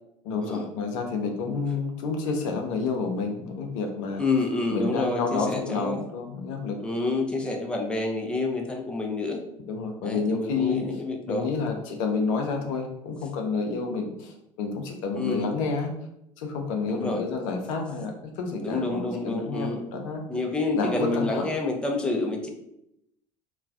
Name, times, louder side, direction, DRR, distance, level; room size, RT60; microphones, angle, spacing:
voice 1, 0.2-4.2 4.7-6.8 9.7-10.8 11.3-15.9 16.4-20.2 20.7-21.5, left 4 dB, 70° left, 3 dB, 0.5 m, -29 dB
voice 2, 4.2-6.0 6.8-9.4 10.0-11.5 15.2-15.5 16.9-17.2 18.6-19.8 20.3-22.5, left 3 dB, 5° left, 1 dB, 0.5 m, -28 dB
3.1 x 2.1 x 2.3 m, 0.82 s
hypercardioid pair, 70°, 18 cm